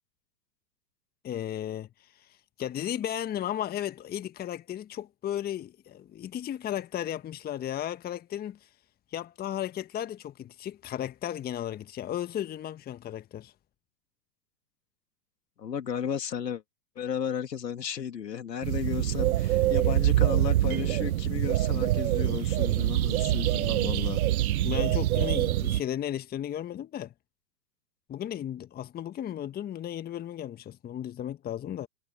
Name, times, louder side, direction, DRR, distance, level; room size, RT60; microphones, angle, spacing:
voice 1, 1.2-1.9 2.2-2.3 2.6-8.7 9.1-13.5 24.6-27.1 28.1-31.9, left 11 dB, 20° left, 1.5 m, -35 dB
voice 2, 15.6-16.6 17.0-24.2, left 8 dB, 75° left, 3.1 m, -34 dB
Birds in forest, 18.6-25.8, right 14 dB, 55° right, 1.3 m, -25 dB
hypercardioid pair, 110°, 50 cm